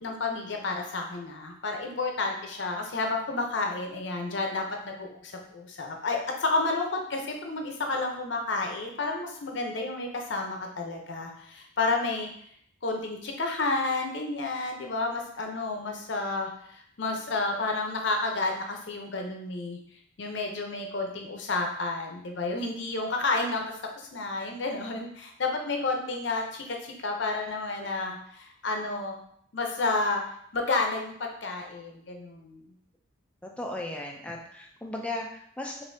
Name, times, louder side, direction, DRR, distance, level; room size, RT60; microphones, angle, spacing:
voice 1, 0.0-12.3 12.8-19.8 20.2-29.2 29.5-30.2 30.5-32.6, left 3 dB, 60° left, 2 dB, 0.7 m, -31 dB
voice 2, 33.4-35.8, left 2 dB, 5° left, 0 dB, 0.4 m, -36 dB
5.2 x 2.6 x 2.7 m, 0.67 s
head